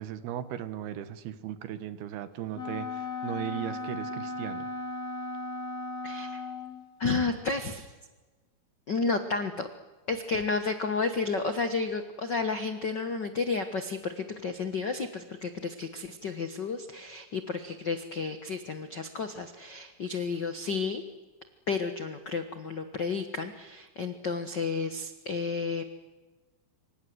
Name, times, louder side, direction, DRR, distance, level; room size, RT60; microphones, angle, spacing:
voice 1, 0.0-4.7, right 11 dB, 85° right, 13 dB, 3.4 m, -37 dB
Wind instrument woodwind instrument, 2.5-6.8, left 2 dB, 25° left, 3.2 m, -36 dB
voice 2, 6.0-6.4 7.0-7.9 8.9-9.7 10.1-21.0 21.7-25.8, left 4 dB, 80° left, 8 dB, 0.9 m, -31 dB
26.5 x 26.0 x 8.0 m, 1.2 s
omnidirectional pair, 4.4 m